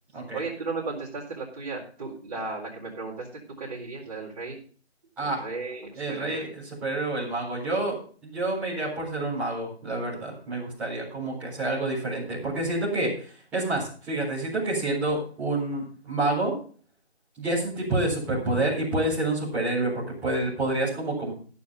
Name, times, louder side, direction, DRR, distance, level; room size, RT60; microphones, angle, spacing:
voice 1, 0.3-4.6 5.2-6.5, right 3 dB, 35° right, -6 dB, 4.2 m, -35 dB
voice 2, 6.0-6.5 6.8-16.6 17.4-21.3, right 2 dB, 5° right, -10 dB, 4.4 m, -28 dB
15.5 x 7.1 x 5.5 m, 0.42 s
figure-of-eight pair, 165°, 33 cm